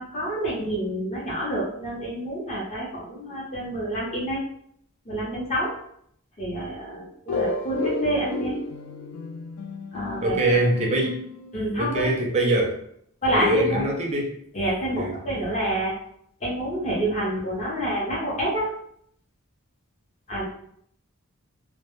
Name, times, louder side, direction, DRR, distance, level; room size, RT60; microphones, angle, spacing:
voice 1, 0.0-4.4 5.1-5.7 6.4-8.5 9.9-10.5 11.5-12.1 13.2-13.8 14.5-15.9 16.4-18.7 20.3-20.4, right 1 dB, 30° left, -5 dB, 0.6 m, -28 dB
sound 1, 7.3-11.8, left 2 dB, 80° left, 0.3 m, -32 dB
voice 2, 10.2-11.2 11.8-12.8 13.3-14.4 14.9-15.1, right 1 dB, 30° right, 0 dB, 0.4 m, -23 dB
2.1 x 2.0 x 2.9 m, 0.69 s
head